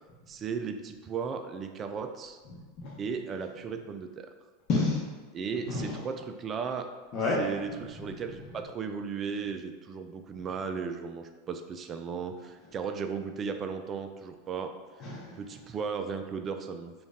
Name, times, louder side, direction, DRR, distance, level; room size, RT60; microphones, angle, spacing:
voice 1, 0.3-2.4 3.0-4.3 5.3-6.9 7.4-14.7 15.4-16.9, right 6 dB, 30° right, 7 dB, 0.4 m, -36 dB
voice 2, 2.5-3.0 4.7-5.0 5.7-6.0 7.1-7.4 7.9-8.1 15.0-15.4, left 3 dB, 40° left, -4 dB, 0.9 m, -30 dB
5.1 x 2.4 x 3.5 m, 1.3 s
figure-of-eight pair, 85°, 0 cm